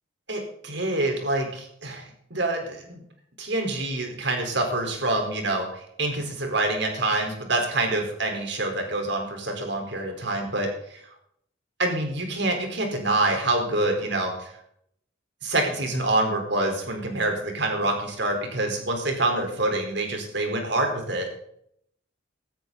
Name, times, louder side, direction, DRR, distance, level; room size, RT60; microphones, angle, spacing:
voice 1, 0.3-2.0 2.3-3.0 3.4-11.0 11.8-14.5 15.4-21.3, right 2 dB, 60° right, 3 dB, 4.4 m, -26 dB
16.0 x 14.0 x 4.1 m, 0.69 s
head